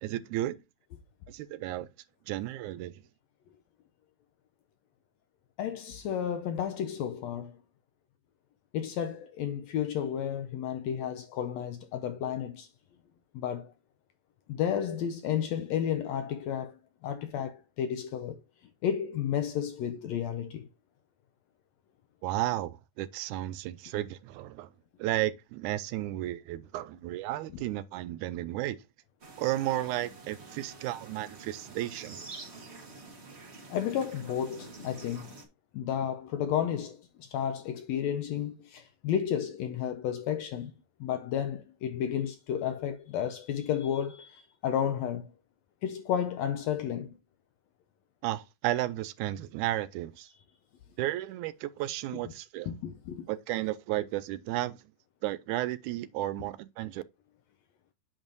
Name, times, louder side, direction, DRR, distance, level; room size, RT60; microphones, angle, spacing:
voice 1, 0.0-0.6 1.3-1.9 2.3-2.9 22.2-24.7 25.0-28.8 29.4-32.2 48.2-50.3 51.0-52.7 53.3-54.8 55.2-57.0, right 15 dB, 80° right, 1.9 m, -33 dB
voice 2, 5.6-7.6 8.7-12.7 13.3-13.7 14.5-16.8 17.0-18.4 18.8-20.7 33.7-35.4 35.7-40.7 41.0-45.3 45.8-47.1 52.7-53.3, left 9 dB, 80° left, 1.6 m, -32 dB
sound 1, 29.2-35.4, right 3 dB, 50° right, 0.7 m, -48 dB
8.9 x 6.1 x 2.6 m
omnidirectional pair, 3.5 m